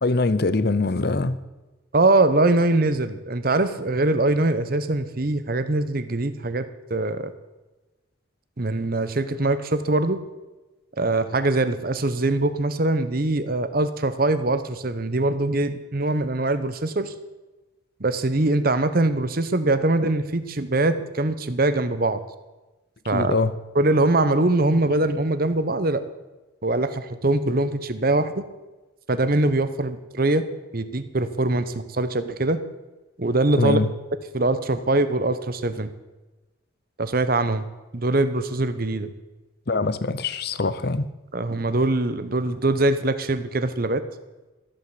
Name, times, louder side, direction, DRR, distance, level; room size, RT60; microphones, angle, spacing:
voice 1, 0.0-1.4 23.1-23.5 33.6-33.9 39.7-41.1, left 3 dB, 55° left, 14 dB, 0.7 m, -23 dB
voice 2, 1.9-6.6 6.9-7.3 8.6-10.2 11.0-17.1 18.0-22.2 23.1-23.3 23.7-26.0 26.6-28.4 29.1-30.4 30.7-32.6 33.2-33.8 34.3-35.9 37.0-37.7 37.9-39.1 41.3-44.0, right 2 dB, 45° right, 11 dB, 0.9 m, -22 dB
13.5 x 8.8 x 7.9 m, 1.1 s
head